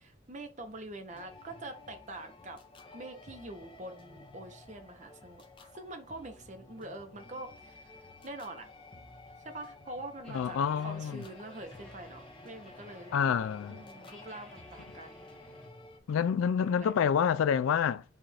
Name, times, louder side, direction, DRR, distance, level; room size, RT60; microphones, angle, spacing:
voice 1, 0.0-2.6 2.9-5.4 5.7-8.7 9.4-13.2 13.7-15.2 16.6-16.9, right 2 dB, 35° right, 0.7 m, -45 dB
sound 1, 1.1-16.0, left 2 dB, 25° left, 0.6 m, -53 dB
sound 2, 10.2-15.7, left 1 dB, 5° left, 0.9 m, -55 dB
voice 2, 10.3-11.2 13.1-13.8 16.1-18.0, left 7 dB, 80° left, 0.3 m, -28 dB
4.8 x 2.5 x 4.1 m
head